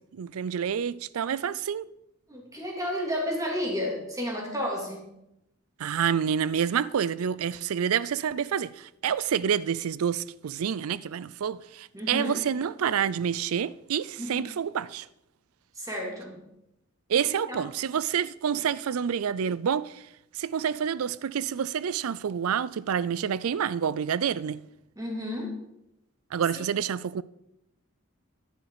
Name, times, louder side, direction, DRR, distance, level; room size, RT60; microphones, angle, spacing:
voice 1, 0.0-1.9 5.8-15.1 17.1-20.0 20.3-24.6 26.3-27.2, right 8 dB, 90° right, 0.4 m, -28 dB
voice 2, 2.3-5.1 11.9-12.4 14.2-14.4 15.8-16.4 17.2-17.6 25.0-25.5 26.6-26.7, left 1 dB, 15° right, 2.8 m, -32 dB
10.5 x 10.5 x 4.8 m
head